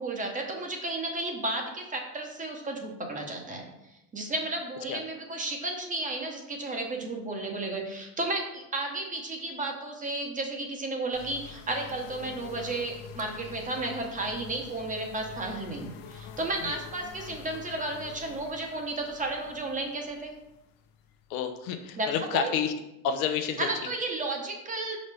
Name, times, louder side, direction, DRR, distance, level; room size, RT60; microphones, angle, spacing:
voice 1, 0.0-3.7 4.1-20.3 22.0-22.5 23.6-25.0, right 2 dB, 20° right, 2 dB, 1.0 m, -33 dB
sound 1, 11.1-21.7, left 7 dB, 55° left, 0.7 m, -47 dB
voice 2, 21.3-22.7 23.0-23.7, left 7 dB, 90° left, 7 dB, 0.8 m, -29 dB
5.4 x 5.1 x 3.4 m, 0.92 s
supercardioid pair, 130°, 41 cm